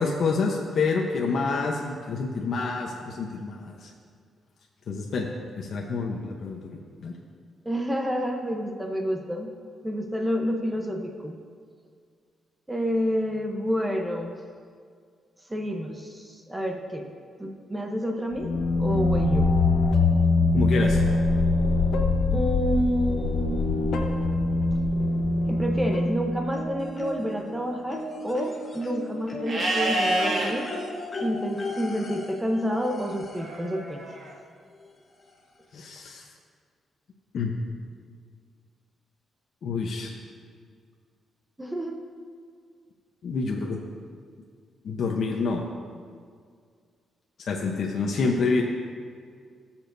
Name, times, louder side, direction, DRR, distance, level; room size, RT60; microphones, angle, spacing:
voice 1, 0.0-3.9 4.9-5.3 5.6-7.1 20.5-21.0 35.7-36.2 37.3-37.5 39.6-40.1 43.2-43.8 44.8-45.6 47.5-48.6, left 4 dB, 60° left, -1 dB, 0.9 m, -27 dB
voice 2, 7.6-9.5 9.8-11.3 12.7-14.3 15.5-17.1 17.4-18.5 18.8-19.5 22.3-23.7 25.5-30.7 31.2-34.0 41.6-42.0, equal, 10° right, 2 dB, 0.9 m, -29 dB
sound 1, 18.3-26.9, left 3 dB, 85° left, 1.0 m, -23 dB
sound 2, 26.5-27.5 27.9-33.6 34.8-34.9 35.3-35.4, left 2 dB, 35° left, 1.3 m, -37 dB
Livestock farm animals working animals, 29.5-30.5 33.3-34.3, right 1 dB, 45° right, 1.8 m, -27 dB
18.0 x 7.1 x 2.7 m, 2.1 s
cardioid pair, 125°, 0 cm